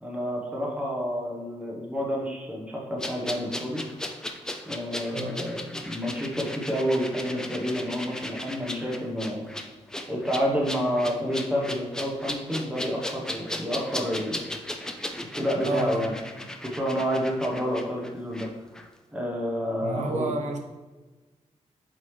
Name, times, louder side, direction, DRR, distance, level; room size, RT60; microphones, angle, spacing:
voice 1, 0.0-3.8 4.7-9.4 10.1-14.4 15.3-16.1 16.6-18.5 19.1-20.3, equal, 10° right, -2 dB, 1.1 m, -29 dB
sound 1, 3.0-18.5 18.7-18.9, left 1 dB, 5° left, 0.4 m, -36 dB
voice 2, 5.1-5.5 15.6-16.1 19.8-20.6, right 3 dB, 75° right, 3 dB, 0.9 m, -30 dB
7.7 x 4.0 x 3.2 m, 1.2 s
wide cardioid pair, 180°, 12 cm